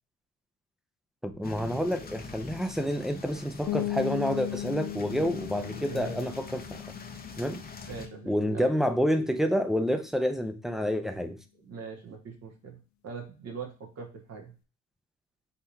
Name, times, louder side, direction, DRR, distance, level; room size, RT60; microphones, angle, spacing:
voice 1, 1.2-6.8 7.4-7.6 8.3-11.4, equal, ahead, 7 dB, 0.7 m, -28 dB
sound 1, 1.4-8.1, left 4 dB, 30° left, 0.8 m, -44 dB
sound 2, 3.7-9.3, left 14 dB, 65° left, 0.6 m, -37 dB
voice 2, 5.8-6.2 7.9-8.7 11.7-14.5, right 5 dB, 55° right, 2 dB, 1.4 m, -42 dB
5.7 x 3.1 x 2.7 m, 0.34 s
cardioid pair, 90°, 30 cm